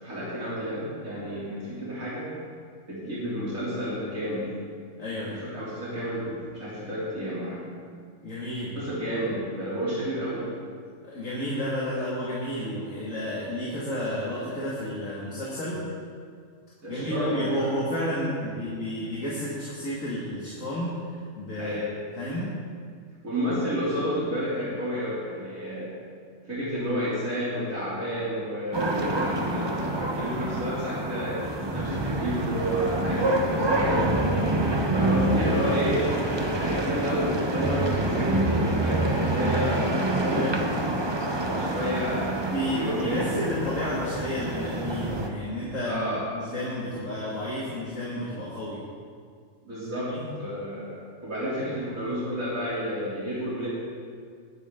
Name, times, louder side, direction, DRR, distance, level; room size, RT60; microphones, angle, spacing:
voice 1, 0.0-2.3 2.9-4.5 5.2-7.6 8.8-10.5 16.8-17.6 18.4-18.6 21.6-21.9 23.2-25.9 26.5-31.4 31.7-34.4 34.9-36.1 36.5-39.9 40.2-40.6 41.4-43.4 45.9-46.2 49.6-50.1 50.4-53.7, equal, 75° right, -10 dB, 3.9 m, -31 dB
voice 2, 5.0-5.4 8.2-8.8 11.0-15.9 16.9-21.0 21.4-21.8 22.2-22.5 33.1-33.4 40.3-40.6 42.5-48.8 49.9-50.3, left 1 dB, 70° left, -7 dB, 2.8 m, -31 dB
sound 1, 28.7-45.3, right 1 dB, 20° right, 1.0 m, -27 dB
21.5 x 10.0 x 3.9 m, 2.1 s
omnidirectional pair, 1.4 m